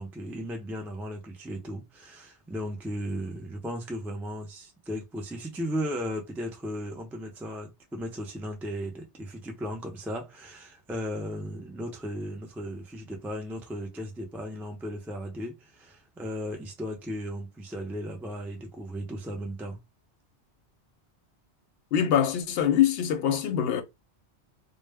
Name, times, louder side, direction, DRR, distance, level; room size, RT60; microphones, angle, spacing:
voice 1, 0.0-19.8, equal, 5° right, 0.3 m, -36 dB
voice 2, 21.9-23.8, left 9 dB, 65° left, 0.7 m, -24 dB
2.1 x 2.0 x 3.4 m
omnidirectional pair, 1.2 m